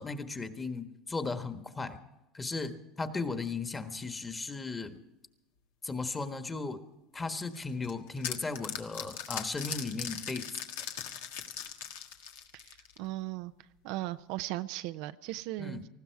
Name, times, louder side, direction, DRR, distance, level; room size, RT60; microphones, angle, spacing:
voice 1, 0.0-2.0 2.3-5.0 5.8-6.8 7.1-10.5 15.6-15.9, left 3 dB, 20° left, 9 dB, 1.4 m, -36 dB
sound 1, 7.5-13.1, left 9 dB, 85° left, 1.5 m, -39 dB
voice 2, 12.5-13.5 13.8-15.8, right 16 dB, 70° right, 11 dB, 0.6 m, -37 dB
19.5 x 15.0 x 4.7 m, 0.98 s
supercardioid pair, 105°, 0 cm